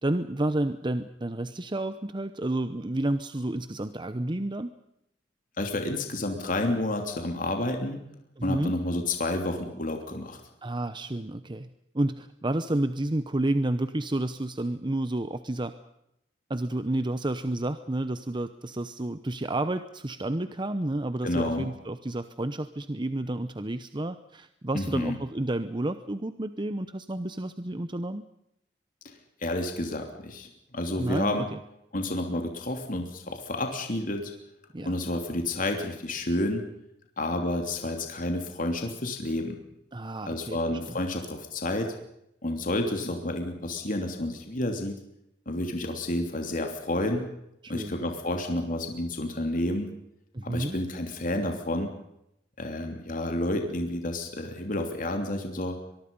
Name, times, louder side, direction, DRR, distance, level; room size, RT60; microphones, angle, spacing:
voice 1, 0.0-4.7 8.4-8.7 10.6-11.7 11.9-15.7 16.5-28.2 31.0-31.6 34.7-35.0 39.9-41.0 47.6-47.9 50.3-50.8, right 1 dB, 25° right, 11 dB, 0.8 m, -30 dB
voice 2, 5.6-8.0 8.4-10.4 21.2-21.7 24.7-25.2 29.0-29.1 29.4-31.5 31.9-34.3 34.8-36.6 37.2-39.6 40.2-41.9 42.4-45.0 45.5-47.2 47.7-49.9 50.4-51.9 52.6-55.8, left 1 dB, 45° left, 4 dB, 3.1 m, -30 dB
23.5 x 22.5 x 5.4 m, 0.80 s
head